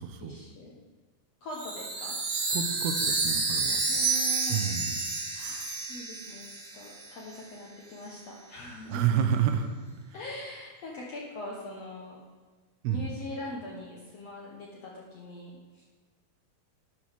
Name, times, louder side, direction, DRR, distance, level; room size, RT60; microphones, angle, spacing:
voice 1, 0.2-0.7 1.4-2.1 3.9-4.7 5.3-9.0 10.1-12.2 12.8-15.8, left 1 dB, 70° left, -3 dB, 1.6 m, -42 dB
Chime, 1.5-7.1, right 3 dB, 55° right, 2.6 m, -30 dB
voice 2, 2.5-3.8 4.5-5.0 8.9-9.7 12.8-13.1, right 8 dB, 85° right, 7 dB, 2.7 m, -29 dB
12.0 x 9.8 x 3.6 m, 1.4 s
omnidirectional pair, 4.4 m